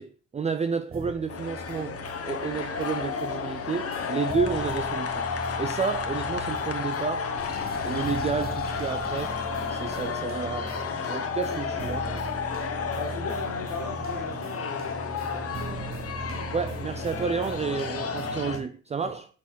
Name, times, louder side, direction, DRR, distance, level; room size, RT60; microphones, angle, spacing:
voice 1, 0.0-5.3 5.6-7.3 7.8-9.4 9.7-12.0 12.5-12.7 16.5-19.3, right 5 dB, 25° right, 0.4 m, -31 dB
sound 1, 0.9-18.6, right 2 dB, 45° right, 1.4 m, -39 dB
sound 2, 1.3-18.6, left 6 dB, 50° left, 1.2 m, -32 dB
Sink (filling or washing), 7.4-10.1, left 6 dB, 30° left, 0.8 m, -43 dB
voice 2, 12.9-15.8 19.0-19.1, left 4 dB, 80° left, 2.4 m, -38 dB
8.2 x 5.1 x 3.9 m
cardioid pair, 90°, 30 cm